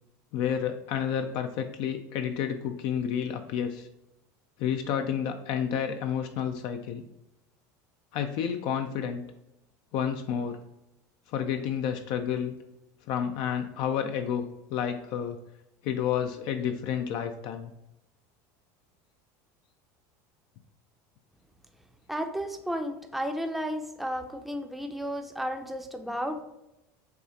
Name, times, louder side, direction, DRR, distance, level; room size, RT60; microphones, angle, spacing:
voice 1, 0.3-3.9 4.6-7.0 8.1-9.2 9.9-10.6 11.3-12.6 13.1-15.4 15.8-17.7, left 8 dB, 60° left, 7 dB, 0.4 m, -30 dB
voice 2, 22.1-26.4, equal, ahead, 5 dB, 0.5 m, -33 dB
6.8 x 2.4 x 2.8 m, 0.89 s
supercardioid pair, 115°, 9 cm